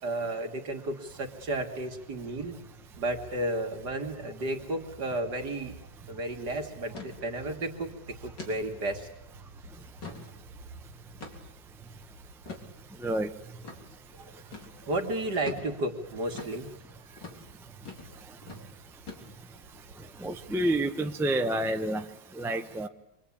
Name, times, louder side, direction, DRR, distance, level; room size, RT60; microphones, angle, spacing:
voice 1, 0.0-2.6 3.0-5.8 6.1-7.9 8.2-9.1 14.2-14.4 14.8-16.7 18.6-18.7, right 1 dB, 60° right, 3 dB, 2.9 m, -33 dB
sound 1, 1.1-20.9, right 3 dB, 85° right, 2.1 m, -52 dB
sound 2, 5.0-5.2 5.5-5.6 6.0-6.2 6.9-7.1 7.6-7.8 8.4-8.6 9.1-9.2 9.7-10.3 11.2-11.6 12.5-12.7 13.6-13.8 14.5-14.7 15.5-15.7 16.3-16.6 17.2-17.4 17.9-18.1 18.4-18.6 19.1-19.5, left 4 dB, 70° left, 4.4 m, -43 dB
voice 2, 13.0-13.3 20.2-22.0 22.3-22.9, right 1 dB, ahead, 6 dB, 0.5 m, -28 dB
27.5 x 23.0 x 8.7 m, 0.90 s
omnidirectional pair, 2.0 m